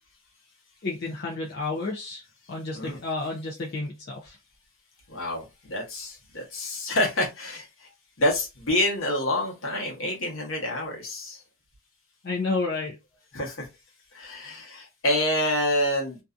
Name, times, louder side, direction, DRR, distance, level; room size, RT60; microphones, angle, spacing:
voice 1, 0.8-4.4 12.2-13.0, left 3 dB, 45° left, 0.5 m, -31 dB
voice 2, 5.1-7.9 8.2-11.4 13.3-13.7 14.1-16.2, left 1 dB, 65° left, 1.1 m, -27 dB
2.6 x 2.3 x 2.4 m
head